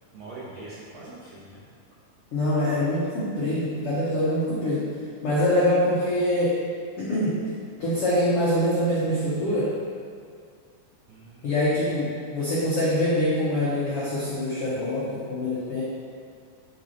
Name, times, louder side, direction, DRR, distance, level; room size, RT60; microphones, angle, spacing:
voice 1, 0.1-1.6 11.1-11.8, right 2 dB, 75° right, -8 dB, 1.6 m, -43 dB
voice 2, 2.3-4.9 5.2-6.6 7.0-7.4 7.8-9.7 11.4-15.8, left 1 dB, 80° left, -8 dB, 1.3 m, -24 dB
10.5 x 5.3 x 2.9 m, 2.1 s
omnidirectional pair, 4.3 m